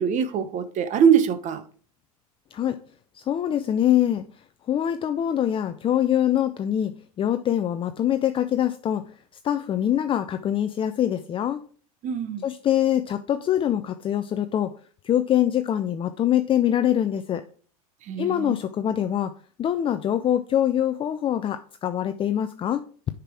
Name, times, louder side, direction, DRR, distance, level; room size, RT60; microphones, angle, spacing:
voice 1, 0.0-1.6 12.0-12.4 18.1-18.6, right 7 dB, 40° right, 1.0 m, -22 dB
voice 2, 3.1-4.3 4.7-9.0 9.4-11.6 12.4-14.7 15.0-17.4 18.2-19.3 19.6-22.8, left 10 dB, 25° left, 0.5 m, -24 dB
6.7 x 5.9 x 4.8 m
hypercardioid pair, 95°, 19 cm